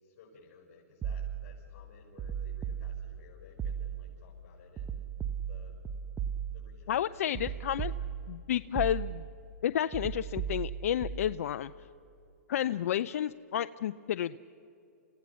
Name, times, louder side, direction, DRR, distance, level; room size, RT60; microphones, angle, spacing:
voice 1, 0.0-5.0 5.5-5.8 6.5-7.8, left 4 dB, 45° left, -4 dB, 6.2 m, -57 dB
sound 1, 1.0-1.6 2.2-3.3 3.6-4.2 4.8-6.8 7.3-8.4 8.8-9.4 9.9-11.3, right 8 dB, 15° right, 0.9 m, -36 dB
voice 2, 6.9-7.9 8.3-9.3 9.6-11.7 12.5-14.4, left 10 dB, 60° left, 13 dB, 0.4 m, -31 dB
30.0 x 16.0 x 7.1 m, 2.9 s
hypercardioid pair, 135°, 9 cm